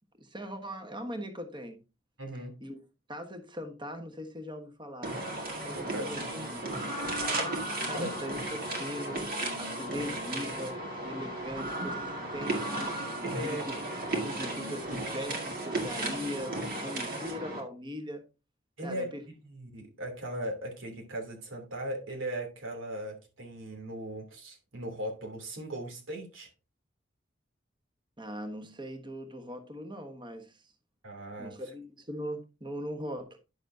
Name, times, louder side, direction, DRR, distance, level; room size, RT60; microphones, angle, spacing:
voice 1, 0.2-1.8 2.6-2.8 3.1-5.2 5.6-6.6 7.8-9.3 9.6-10.8 11.0-13.0 13.4-13.7 14.1-18.2 18.8-19.2 28.2-30.6 31.4-33.4, equal, 25° right, 1.3 m, -40 dB
voice 2, 2.2-2.5 5.7-6.1 7.9-8.1 13.2-13.6 18.8-26.5 31.0-31.5, right 1 dB, 90° right, 3.0 m, -38 dB
sound 1, 5.0-17.6, right 2 dB, 50° right, 2.1 m, -34 dB
10.0 x 7.2 x 2.7 m
head